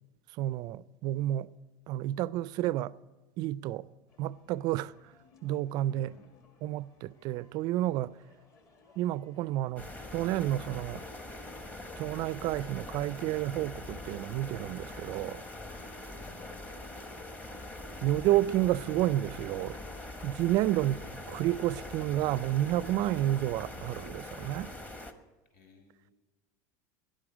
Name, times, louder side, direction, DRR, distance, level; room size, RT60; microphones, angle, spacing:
voice 1, 0.4-1.5 1.9-2.9 3.4-3.9 4.2-4.9 5.4-6.1 6.6-8.1 9.0-9.9 10.1-11.0 12.0-15.4 18.0-19.8 20.2-21.0 21.3-24.7, right 14 dB, 45° right, 0.4 m, -30 dB
sound 1, 4.1-21.0 21.4-22.1, left 3 dB, 40° left, 1.8 m, -64 dB
voice 2, 5.9-6.3 16.0-16.5 20.6-21.0 25.5-26.1, left 2 dB, 75° left, 3.4 m, -58 dB
sound 2, 9.8-25.1, left 1 dB, 15° left, 1.0 m, -43 dB
18.0 x 11.5 x 4.9 m
supercardioid pair, 145°, 10 cm